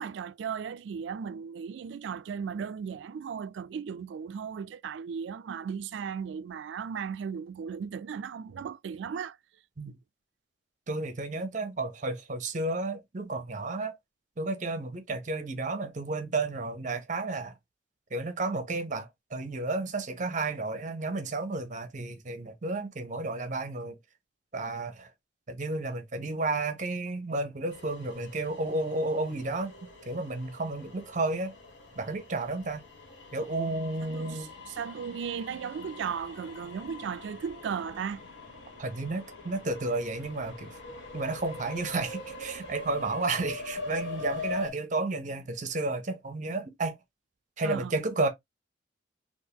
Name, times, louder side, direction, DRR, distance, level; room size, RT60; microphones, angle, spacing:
voice 1, 0.0-9.4 9.9-10.0 34.0-38.2 47.6-47.9, right 7 dB, 75° right, 0.3 m, -36 dB
voice 2, 10.9-14.0 14.4-17.5 18.1-24.0 24.5-25.1 25.5-29.7 30.1-31.5 32.0-32.8 33.3-34.5 38.8-40.8 41.1-47.0 47.6-48.3, right 2 dB, 45° right, 0.7 m, -32 dB
sound 1, 27.7-44.7, left 3 dB, 90° left, 1.5 m, -43 dB
3.6 x 2.5 x 2.8 m
head